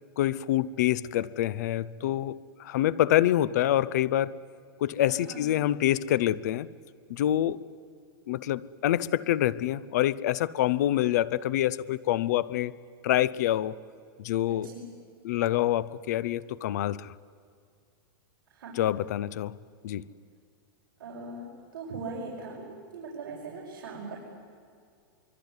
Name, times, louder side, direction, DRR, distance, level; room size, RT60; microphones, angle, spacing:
voice 1, 0.2-4.3 4.8-6.7 7.1-7.6 8.3-12.7 13.0-13.8 14.2-14.7 15.2-17.1 18.8-19.6 19.8-20.0, left 13 dB, 45° left, 20 dB, 0.7 m, -26 dB
voice 2, 5.1-5.5 14.5-14.8 18.5-18.8 21.0-21.5 21.7-24.2, right 3 dB, 60° right, -5 dB, 6.1 m, -40 dB
24.5 x 24.0 x 9.6 m, 2.3 s
supercardioid pair, 180°, 12 cm